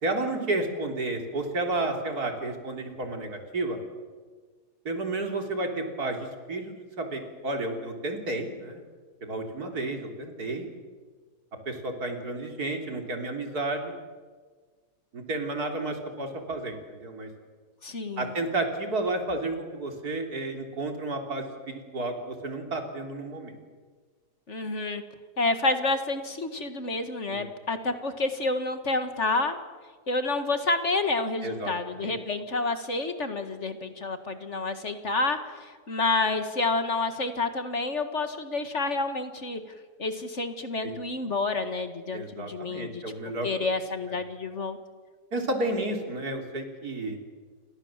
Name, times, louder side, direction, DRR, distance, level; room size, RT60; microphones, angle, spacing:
voice 1, 0.0-3.8 4.9-8.8 9.2-10.7 11.7-13.9 15.1-17.3 18.2-23.5 27.3-27.4 31.4-32.2 40.8-41.0 42.1-43.5 44.1-44.2 45.3-47.2, right 2 dB, 70° right, 4 dB, 4.0 m, -31 dB
voice 2, 17.8-18.3 24.5-25.0 25.4-29.6 30.1-39.6 40.0-43.0 43.4-44.8, left 3 dB, 45° left, 8 dB, 2.1 m, -29 dB
29.0 x 25.0 x 7.5 m, 1.5 s
omnidirectional pair, 1.7 m